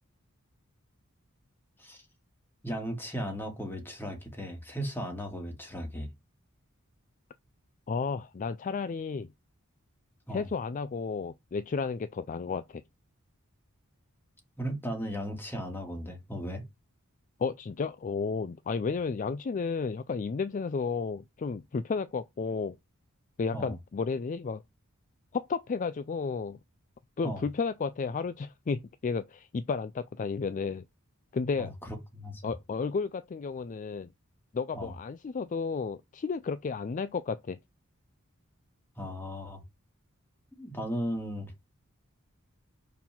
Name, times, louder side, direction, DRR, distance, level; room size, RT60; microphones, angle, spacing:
voice 1, 2.6-6.1 10.3-10.5 14.6-16.6 23.5-23.8 27.2-27.4 31.6-32.5 34.7-34.9 39.0-39.6 40.6-41.5, equal, 10° left, 2.1 m, -36 dB
voice 2, 7.9-9.3 10.3-12.8 17.4-22.8 23.4-24.6 25.3-26.6 27.2-30.8 31.3-31.7 32.4-34.1 34.5-37.6, left 5 dB, 35° left, 0.3 m, -32 dB
5.5 x 4.5 x 5.8 m
head